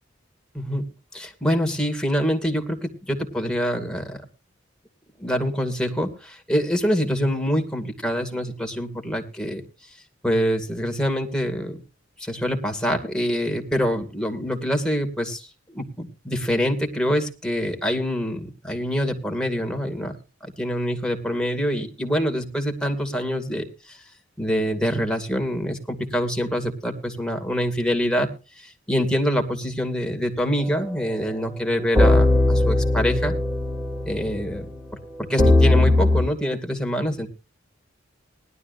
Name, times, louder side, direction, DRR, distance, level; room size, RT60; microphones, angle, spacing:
voice 1, 0.5-0.9 1.1-4.2 5.2-9.6 10.2-11.8 12.2-15.5 15.7-20.1 20.6-24.0 24.4-28.3 28.6-33.3 34.1-34.7 35.2-37.3, equal, 5° left, 3 dB, 2.4 m, -25 dB
sound 1, 30.6-30.7 31.2-31.3 31.9-34.7 35.4-36.2, left 2 dB, 15° right, 3.1 m, -19 dB
20.0 x 12.0 x 2.6 m, 0.32 s
head